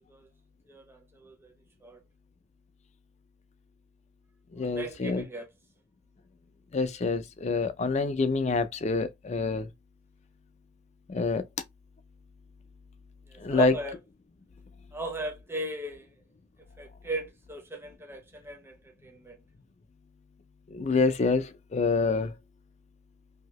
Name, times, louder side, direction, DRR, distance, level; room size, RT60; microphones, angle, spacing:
voice 1, 0.7-1.5 1.8-2.0 4.6-5.5 13.3-14.0 14.9-16.1 16.8-19.4, right 1 dB, 10° right, 0.7 m, -38 dB
voice 2, 4.5-5.2 6.7-9.7 11.1-11.4 13.4-13.8 20.7-22.3, left 3 dB, 35° left, 0.4 m, -26 dB
2.8 x 2.7 x 3.0 m
head